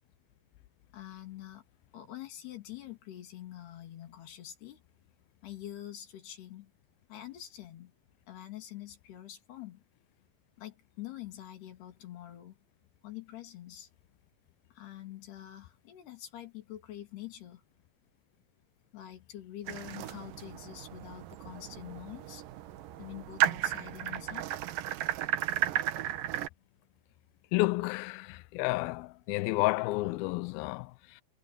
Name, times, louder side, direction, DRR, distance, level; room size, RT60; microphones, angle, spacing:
voice 1, 0.9-1.7 1.9-4.8 5.4-6.7 7.1-7.9 8.3-9.8 10.6-12.6 13.0-13.9 14.7-17.6 18.9-22.4 23.0-24.5, left 12 dB, 70° left, 4.6 m, -45 dB
sound 1, 19.7-26.5, right 12 dB, 70° right, 2.2 m, -34 dB
voice 2, 27.5-31.2, left 21 dB, 85° left, 2.2 m, -31 dB
omnidirectional pair, 4.9 m